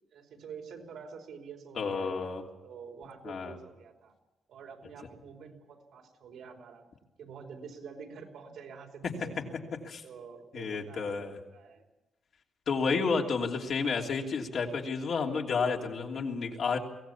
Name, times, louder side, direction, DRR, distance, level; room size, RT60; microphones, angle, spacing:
voice 1, 0.1-2.3 2.6-4.1 4.5-6.9 7.2-9.4 10.0-11.8 13.1-13.4, right 6 dB, 75° right, 2 dB, 4.6 m, -48 dB
voice 2, 1.8-2.5 3.2-3.6 9.0-9.5 9.8-10.0 10.5-11.4 12.7-16.8, left 5 dB, 55° left, 0 dB, 3.0 m, -31 dB
23.0 x 17.5 x 8.6 m, 1.0 s
cardioid pair, 140°, 0 cm